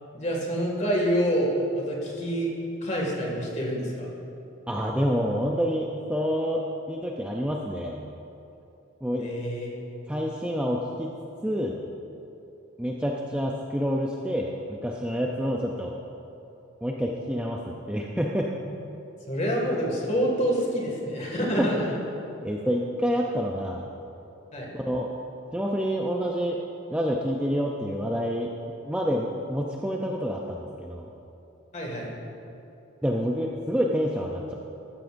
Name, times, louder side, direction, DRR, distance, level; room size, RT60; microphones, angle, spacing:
voice 1, 0.1-2.5 2.8-4.1 9.2-9.7 19.3-21.9 24.5-24.7 31.7-32.1, equal, 30° left, -2 dB, 2.1 m, -27 dB
voice 2, 4.7-8.0 9.0-9.3 10.1-11.1 11.4-11.8 12.8-15.9 16.8-18.5 21.6-21.7 22.4-23.8 24.7-25.1 25.5-26.6 26.9-28.5 28.8-31.1 33.0-34.5, equal, 5° right, -1 dB, 0.5 m, -28 dB
13.5 x 13.5 x 2.6 m, 2.9 s
head